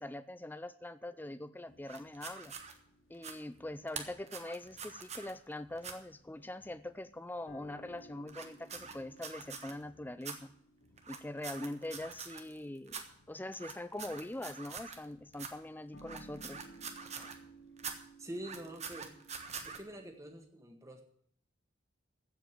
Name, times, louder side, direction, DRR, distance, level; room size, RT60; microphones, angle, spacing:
voice 1, 0.0-2.5 3.1-10.5 11.1-13.0 13.3-16.6 17.2-17.3, left 1 dB, 10° left, 13 dB, 0.4 m, -43 dB
sound 1, 1.7-20.4, right 1 dB, 80° left, 1.8 m, -60 dB
sound 2, 1.9-2.7 3.1-3.3 3.9-5.3 5.8-5.9 8.3-9.7 10.2-10.3 11.0-12.6 12.9-13.0 13.5-15.0 15.3-15.5 16.0-17.4 17.8-17.9 18.3-19.8, right 6 dB, 35° right, 1.3 m, -44 dB
voice 2, 18.2-19.2 19.6-21.0, right 1 dB, 15° right, 4 dB, 1.7 m, -46 dB
15.0 x 5.3 x 9.1 m, 0.64 s
head